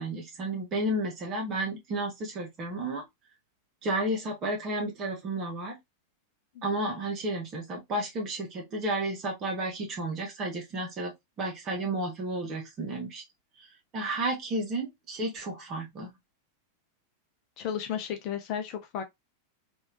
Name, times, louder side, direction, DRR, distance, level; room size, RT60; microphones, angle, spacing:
voice 1, 0.0-3.0 3.8-5.7 6.6-13.2 13.9-16.1, right 1 dB, 30° right, 1.3 m, -32 dB
voice 2, 17.6-19.0, left 8 dB, 40° left, 0.7 m, -33 dB
3.1 x 2.7 x 2.9 m
figure-of-eight pair, 90°, 0 cm